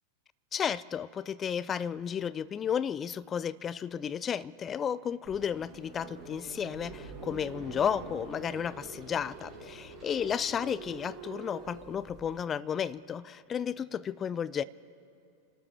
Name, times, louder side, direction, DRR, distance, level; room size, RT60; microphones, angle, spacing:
voice 1, 0.5-14.6, left 8 dB, 25° left, 0.4 m, -33 dB
sound 1, 5.2-12.4, right 3 dB, 15° right, 5.1 m, -46 dB
29.5 x 13.0 x 3.4 m
figure-of-eight pair, 90°, 0 cm